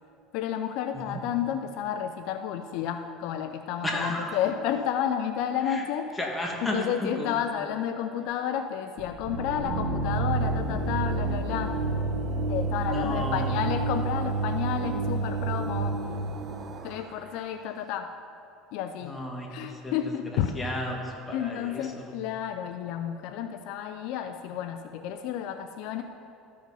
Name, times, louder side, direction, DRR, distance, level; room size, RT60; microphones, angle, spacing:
voice 1, 0.3-6.1 6.6-11.8 12.5-16.0 16.8-18.1 18.7-19.2 19.5-20.6 21.3-26.0, left 9 dB, 70° left, 7 dB, 0.4 m, -31 dB
voice 2, 3.8-4.3 5.7-5.8 6.2-7.4 12.9-13.6 19.0-19.9 20.5-22.0, left 1 dB, 15° left, 0 dB, 1.5 m, -33 dB
sound 1, 9.0-16.8, right 3 dB, 75° right, 1.2 m, -29 dB
sound 2, 10.3-17.7, right 4 dB, 35° right, 0.8 m, -45 dB
13.5 x 5.0 x 5.5 m, 2.5 s
supercardioid pair, 125°, 0 cm